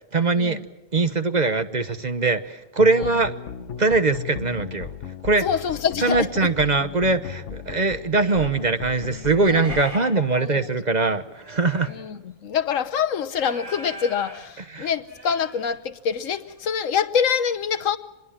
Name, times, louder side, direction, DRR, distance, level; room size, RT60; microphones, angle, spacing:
voice 1, 0.1-0.6 0.9-3.3 3.8-4.9 5.2-5.5 6.0-11.9 14.7-14.9, right 3 dB, 35° right, 1.1 m, -22 dB
sound 1, 2.8-9.8, left 7 dB, 70° left, 1.3 m, -36 dB
voice 2, 5.4-6.5 9.6-9.7 10.1-10.7 11.9-18.0, left 7 dB, 85° left, 1.4 m, -26 dB
sound 2, 8.3-12.2 12.5-12.9 13.3-14.5 14.8-16.0 16.4-16.7, right 1 dB, 70° right, 8.4 m, -41 dB
26.0 x 21.5 x 7.4 m
omnidirectional pair, 1.3 m